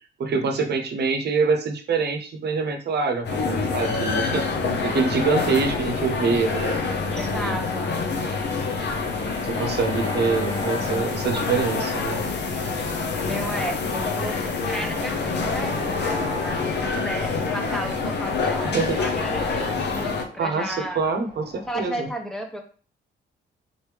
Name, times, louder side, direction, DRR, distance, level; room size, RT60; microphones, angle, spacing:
voice 1, 0.2-4.4 4.8-7.6 9.4-12.2 18.7-19.0 20.4-22.1, right 4 dB, 60° right, 5 dB, 0.9 m, -25 dB
sound 1, 3.2-20.2, left 4 dB, 65° left, 0.8 m, -26 dB
voice 2, 7.1-7.9 13.2-21.0 21.7-22.6, equal, 5° left, 2 dB, 0.8 m, -34 dB
Bowed string instrument, 7.5-11.7, left 2 dB, 40° left, 1.6 m, -39 dB
sound 2, 10.0-21.8, left 2 dB, 85° left, 1.9 m, -39 dB
4.2 x 3.2 x 3.3 m, 0.39 s
cardioid pair, 85°, 19 cm